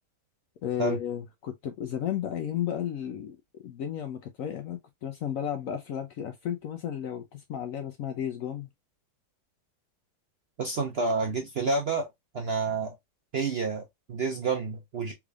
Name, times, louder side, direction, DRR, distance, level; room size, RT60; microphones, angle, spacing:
voice 1, 0.6-3.4 3.6-8.7, left 10 dB, 70° left, 0.8 m, -33 dB
voice 2, 10.6-12.1 12.3-12.9 13.3-15.1, right 4 dB, 60° right, 0.6 m, -29 dB
3.5 x 3.3 x 2.3 m
omnidirectional pair, 1.8 m